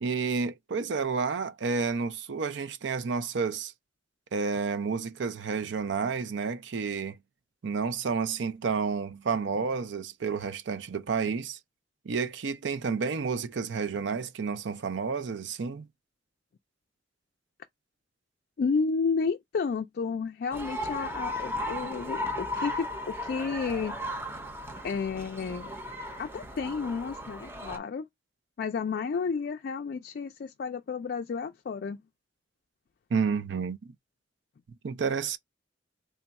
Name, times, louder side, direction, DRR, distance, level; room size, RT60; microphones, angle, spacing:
voice 1, 0.0-3.7 4.3-7.2 7.6-11.6 12.1-15.8 33.1-33.9 34.8-35.4, right 5 dB, 75° right, 0.5 m, -30 dB
voice 2, 18.6-24.0 24.8-25.7 26.2-28.1 28.6-32.0, left 5 dB, 55° left, 0.3 m, -31 dB
sound 1, 20.5-27.8, left 1 dB, 15° right, 0.6 m, -36 dB
3.4 x 2.3 x 4.0 m
head